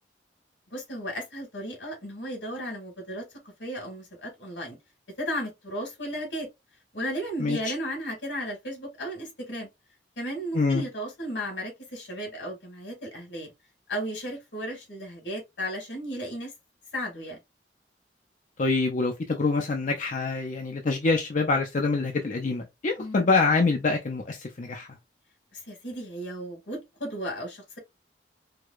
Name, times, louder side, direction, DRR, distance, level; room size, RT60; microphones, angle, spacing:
voice 1, 0.7-3.3 3.6-4.8 5.2-6.5 6.9-9.7 10.2-13.5 13.9-16.5 16.9-17.4 23.0-23.3 25.5-27.8, equal, 85° left, 1.8 m, -34 dB
voice 2, 18.6-24.9, left 3 dB, 45° left, 0.5 m, -25 dB
4.7 x 2.3 x 2.4 m
head